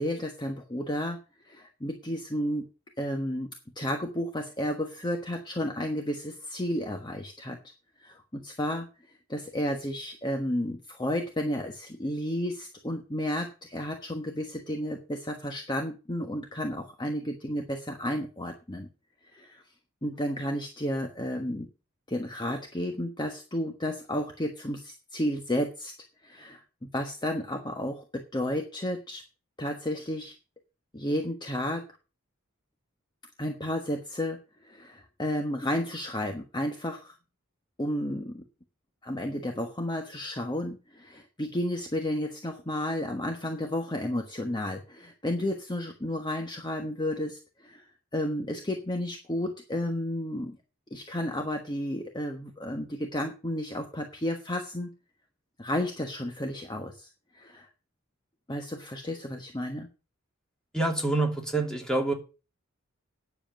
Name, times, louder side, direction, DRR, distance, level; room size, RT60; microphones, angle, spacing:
voice 1, 0.0-2.6 3.0-3.5 3.7-7.6 8.0-8.9 9.3-18.9 19.2-19.6 20.0-21.7 22.1-25.9 26.2-29.2 29.6-30.3 30.9-31.8 33.4-37.2 37.8-38.4 39.0-47.8 48.1-50.6 50.9-54.9 55.6-57.7 58.5-59.9, left 1 dB, 20° left, 1.2 m, -32 dB
voice 2, 60.7-62.1, right 2 dB, 5° left, 2.7 m, -27 dB
10.0 x 7.1 x 7.7 m
head